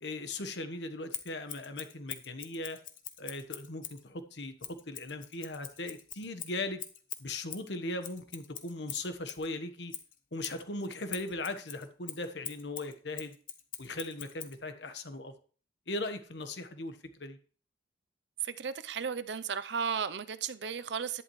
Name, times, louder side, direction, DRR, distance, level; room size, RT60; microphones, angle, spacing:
voice 1, 0.0-2.8 3.2-6.8 7.2-9.9 10.3-13.3 13.8-15.3 15.9-17.4, left 2 dB, 75° left, 1.3 m, -38 dB
Scissors, 1.1-4.0 4.6-9.5 9.9-14.6, left 10 dB, 45° left, 1.0 m, -44 dB
voice 2, 18.4-21.2, right 6 dB, 75° right, 0.6 m, -34 dB
11.0 x 11.0 x 3.2 m
head